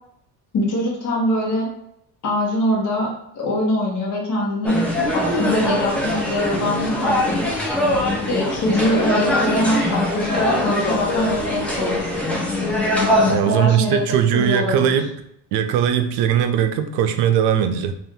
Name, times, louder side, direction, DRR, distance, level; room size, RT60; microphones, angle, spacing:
voice 1, 0.5-1.7 2.2-4.9 5.1-7.5 8.3-12.1 13.1-14.9, left 1 dB, 45° left, -3 dB, 1.2 m, -23 dB
sound 1, 4.6-13.3, left 1 dB, 5° left, 0.6 m, -22 dB
voice 2, 13.3-15.1 15.5-17.9, right 9 dB, 65° right, 8 dB, 0.5 m, -19 dB
2.6 x 2.6 x 3.6 m, 0.76 s
cardioid pair, 115°, 42 cm